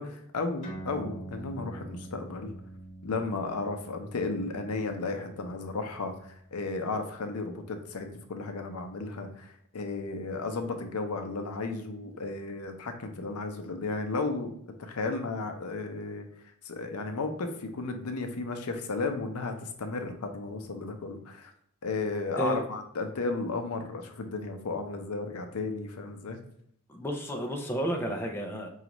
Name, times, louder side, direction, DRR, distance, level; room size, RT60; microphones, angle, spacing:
voice 1, 0.0-2.5 3.0-6.1 6.5-14.5 14.8-16.3 16.6-21.5 21.8-26.4, left 3 dB, 85° left, 5 dB, 0.6 m, -34 dB
sound 1, 0.6-7.5, right 2 dB, 35° left, 1.0 m, -46 dB
voice 2, 26.9-28.7, equal, 10° left, 2 dB, 0.4 m, -31 dB
5.0 x 2.4 x 2.9 m, 0.69 s
head